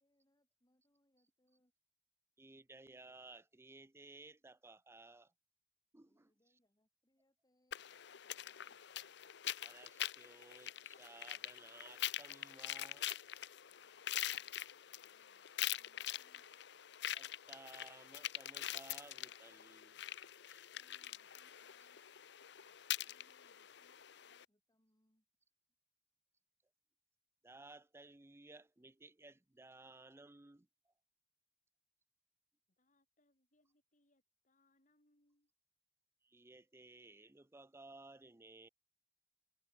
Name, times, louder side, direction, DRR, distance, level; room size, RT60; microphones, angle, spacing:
voice 1, 0.0-1.7 6.1-8.8 13.8-16.5 20.4-20.5 20.7-22.0 22.6-22.7 23.0-25.6, left 1 dB, 20° left, 7.7 m, -80 dB
voice 2, 2.4-5.3 5.9-6.3 9.6-13.1 17.1-20.0 20.5-20.6 27.4-30.9 36.2-38.7, right 2 dB, 15° right, 0.6 m, -58 dB
sound 1, 7.7-24.4, left 12 dB, 65° left, 0.8 m, -44 dB
voice 3, 32.7-35.5, left 1 dB, 45° left, 7.9 m, -78 dB
head